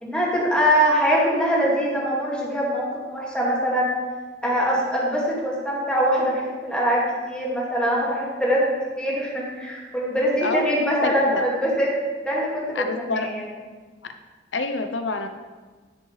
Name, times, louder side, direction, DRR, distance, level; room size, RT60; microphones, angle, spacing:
voice 1, 0.0-3.9 4.4-11.9 12.3-13.4, equal, 5° left, -5 dB, 2.0 m, -23 dB
voice 2, 10.4-11.5 12.7-13.3 14.5-15.3, left 3 dB, 90° left, 8 dB, 0.7 m, -27 dB
10.5 x 7.3 x 3.2 m, 1.4 s
head